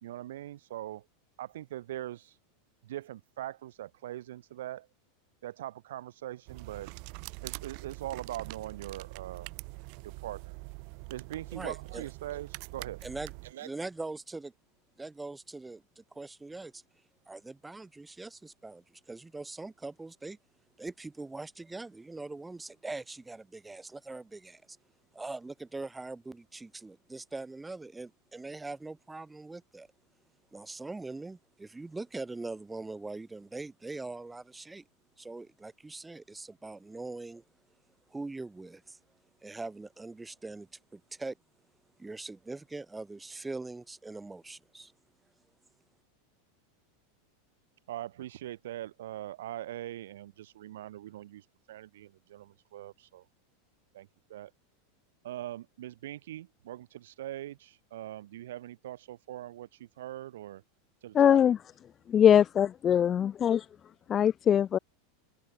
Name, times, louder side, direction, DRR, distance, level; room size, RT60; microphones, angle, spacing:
voice 1, 0.0-1.1 1.4-2.3 2.8-4.9 5.4-6.9 7.4-9.5 10.0-10.5 11.1-13.0 13.5-13.7 47.9-53.2 53.9-54.5 55.2-60.6 61.0-61.5, right 13 dB, 80° right, 4.0 m, -41 dB
sound 1, 6.5-13.5, right 38 dB, 55° right, 4.9 m, -44 dB
voice 2, 11.5-12.0 13.0-13.3 13.6-14.5 15.0-16.8 17.3-20.4 20.8-24.8 25.1-29.9 30.5-34.8 35.2-37.4 38.1-39.0 39.4-41.4 42.0-44.9, right 3 dB, 10° right, 4.5 m, -42 dB
voice 3, 61.1-61.6 62.1-63.6 64.1-64.8, left 9 dB, 25° left, 0.6 m, -22 dB
open air
supercardioid pair, 135°, 0 cm